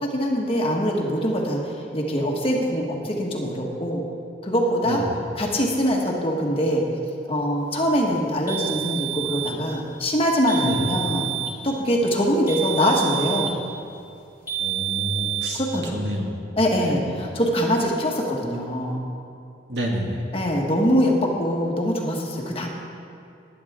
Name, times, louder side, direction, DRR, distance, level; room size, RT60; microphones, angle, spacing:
voice 1, 0.0-4.0 4.4-5.0 5.3-6.8 7.3-11.3 11.6-13.5 15.6-16.0 16.6-19.0 20.3-22.7, equal, 35° left, 0 dB, 1.7 m, -23 dB
voice 2, 4.9-5.2 10.6-10.8 14.6-16.4 16.7-17.1 19.7-20.2, equal, 75° right, -1 dB, 2.1 m, -29 dB
sound 1, 8.5-9.6 10.5-11.6 12.5-13.6 14.5-15.6, right 12 dB, 10° right, 2.6 m, -28 dB
20.0 x 9.5 x 3.7 m, 2.5 s
head